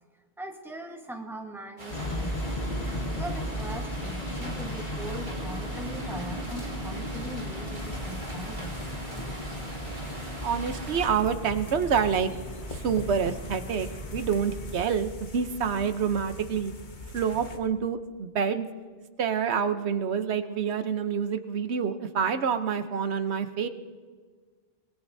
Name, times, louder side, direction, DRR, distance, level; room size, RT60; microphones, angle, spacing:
voice 1, 0.4-2.7 3.1-8.7, right 1 dB, ahead, 2 dB, 1.2 m, -40 dB
sound 1, 1.8-11.1, right 1 dB, 45° right, 2.5 m, -41 dB
sound 2, 1.9-14.7, equal, 80° left, 2.0 m, -36 dB
sound 3, 7.8-17.6, left 2 dB, 50° left, 1.3 m, -42 dB
voice 2, 10.4-12.3 12.7-16.7 17.1-18.7 19.2-23.7, right 7 dB, 90° right, 9 dB, 1.1 m, -27 dB
25.0 x 20.5 x 2.7 m, 1.5 s
omnidirectional pair, 1.1 m